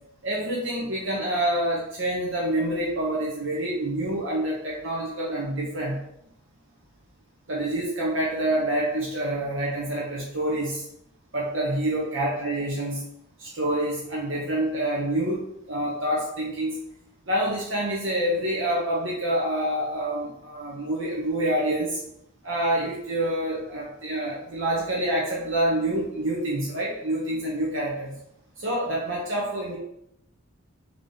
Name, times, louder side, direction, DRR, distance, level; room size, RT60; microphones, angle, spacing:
voice 1, 0.2-6.0 7.5-10.8 11.3-13.0 13.4-15.4 15.7-16.8 17.3-22.0 22.4-28.1 28.6-29.8, right 1 dB, 65° right, -4 dB, 0.9 m, -27 dB
3.6 x 3.5 x 3.9 m, 0.80 s
head